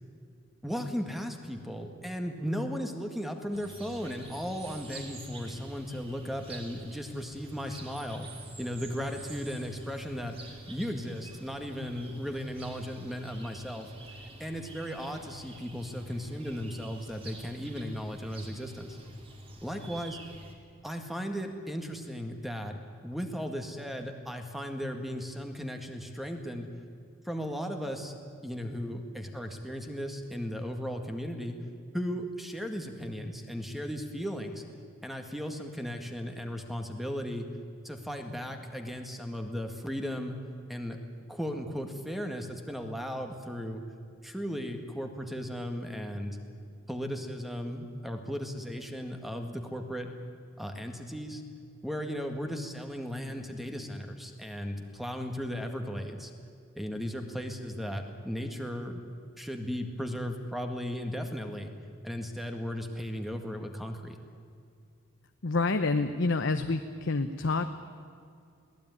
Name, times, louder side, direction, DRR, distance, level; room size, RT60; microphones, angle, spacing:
voice 1, 0.6-8.3 8.6-13.9 14.4-19.0 19.6-20.2 20.8-22.8 23.0-26.7 27.2-28.1 28.4-31.6 31.9-34.6 35.0-37.5 37.8-40.4 40.7-41.0 41.3-43.8 44.2-46.4 46.9-50.1 50.6-51.4 51.8-56.3 56.8-59.0 59.4-61.7 62.0-64.2, equal, ahead, 4 dB, 1.8 m, -36 dB
sound 1, 3.5-20.5, right 1 dB, 25° right, 3.3 m, -47 dB
voice 2, 65.4-67.7, left 3 dB, 60° left, 8 dB, 0.9 m, -28 dB
22.0 x 17.5 x 9.8 m, 2.4 s
head